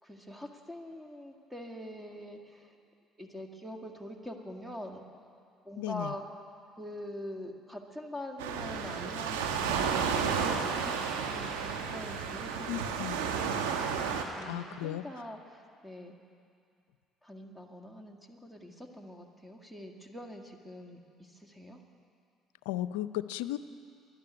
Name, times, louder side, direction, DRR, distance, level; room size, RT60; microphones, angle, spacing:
voice 1, 0.0-2.8 3.2-5.1 5.7-6.4 6.8-13.4 14.4-16.2 17.2-21.8, equal, 5° right, 3 dB, 2.0 m, -44 dB
voice 2, 5.8-6.1 12.7-13.2 14.4-15.0 22.7-23.6, left 14 dB, 85° left, 14 dB, 0.4 m, -35 dB
Waves surf, 8.4-14.2, right 6 dB, 85° right, 1.2 m, -32 dB
12.5 x 11.5 x 9.6 m, 2.3 s
hypercardioid pair, 65°, 0 cm